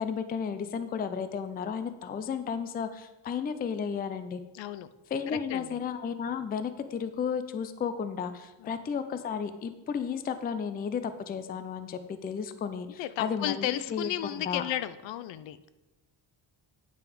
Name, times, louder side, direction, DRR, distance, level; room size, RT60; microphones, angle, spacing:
voice 1, 0.0-4.4 5.1-13.7 13.9-14.6, left 6 dB, 25° left, 11 dB, 0.3 m, -33 dB
voice 2, 4.5-4.9 5.3-5.8 8.6-8.8 13.0-15.7, left 12 dB, 75° left, 14 dB, 0.6 m, -34 dB
9.2 x 5.8 x 5.0 m, 1.0 s
cardioid pair, 175°, 44 cm